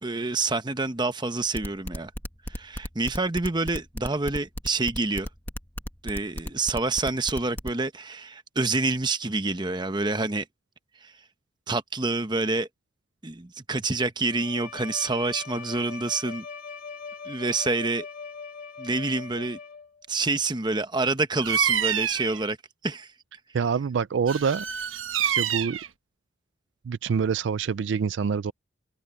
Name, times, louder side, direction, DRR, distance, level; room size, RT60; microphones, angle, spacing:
voice 1, 0.0-2.1 2.5-5.3 6.0-10.5 11.0-11.1 11.7-12.7 13.2-16.5 17.2-18.1 18.8-19.6 20.1-22.6 22.8-23.1, right 3 dB, 20° right, 1.0 m, -27 dB
sound 1, 1.5-7.7, equal, 10° left, 1.6 m, -34 dB
Bowed string instrument, 14.2-20.0, left 5 dB, 45° left, 2.7 m, -41 dB
Bird vocalization bird call bird song, 21.4-22.4 24.3-25.9, right 9 dB, 80° right, 1.1 m, -27 dB
voice 2, 23.5-24.7 25.2-25.8 26.8-28.5, right 6 dB, 65° right, 0.4 m, -26 dB
open air
head